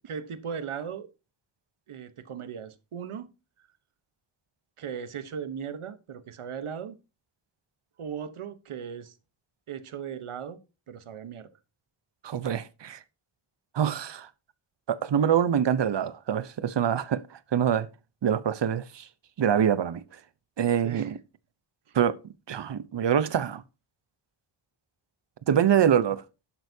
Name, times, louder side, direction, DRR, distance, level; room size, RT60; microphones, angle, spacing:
voice 1, 0.1-1.1 1.9-3.3 4.8-7.0 8.0-9.1 9.7-10.6 10.9-11.5 20.8-21.1 21.9-22.0, right 7 dB, 85° right, 1.1 m, -37 dB
voice 2, 12.2-13.0 13.7-14.3 14.9-17.9 18.2-19.1 19.4-20.0 20.6-21.2 21.9-22.2 22.5-23.6 25.5-26.2, right 9 dB, 60° right, 0.8 m, -25 dB
11.5 x 7.9 x 2.7 m
wide cardioid pair, 165°, 49 cm